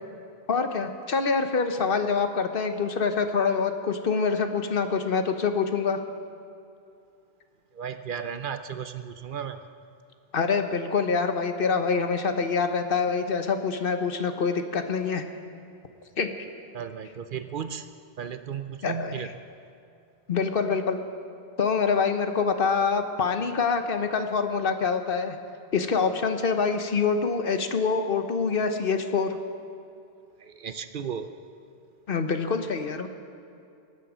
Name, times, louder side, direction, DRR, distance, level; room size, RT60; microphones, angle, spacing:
voice 1, 0.5-6.0 10.3-15.2 16.2-16.3 18.8-19.3 20.3-21.0 21.6-25.4 25.7-29.4 32.1-33.1, left 5 dB, 60° left, 7 dB, 1.1 m, -25 dB
voice 2, 7.7-9.6 16.7-17.9 18.2-19.3 30.4-31.3, right 7 dB, 60° right, 10 dB, 0.7 m, -34 dB
22.0 x 8.3 x 6.2 m, 2.6 s
omnidirectional pair, 1.0 m